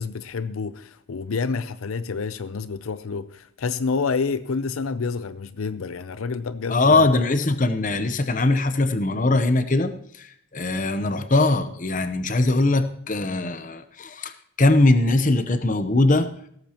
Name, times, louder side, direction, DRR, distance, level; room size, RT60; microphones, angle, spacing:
voice 1, 0.0-7.2, left 4 dB, 80° left, 0.5 m, -28 dB
voice 2, 6.7-9.9 10.2-10.3 10.5-14.3 14.6-16.3, left 2 dB, 35° left, 0.8 m, -21 dB
17.0 x 14.0 x 3.0 m
head